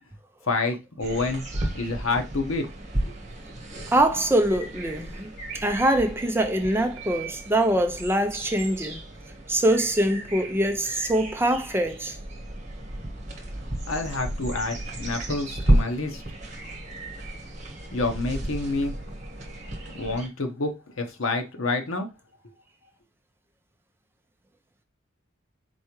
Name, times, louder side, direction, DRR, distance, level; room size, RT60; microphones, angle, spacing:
voice 1, 0.5-1.4 1.7-2.7 3.0-3.1 13.9-16.2 17.9-18.9 19.9-22.1, left 3 dB, 85° left, 1.0 m, -28 dB
sound 1, 1.0-20.3, right 1 dB, 35° right, 1.3 m, -33 dB
voice 2, 3.9-5.3 5.6-9.0 9.5-12.2, right 1 dB, 10° right, 0.5 m, -23 dB
4.4 x 3.4 x 3.0 m
head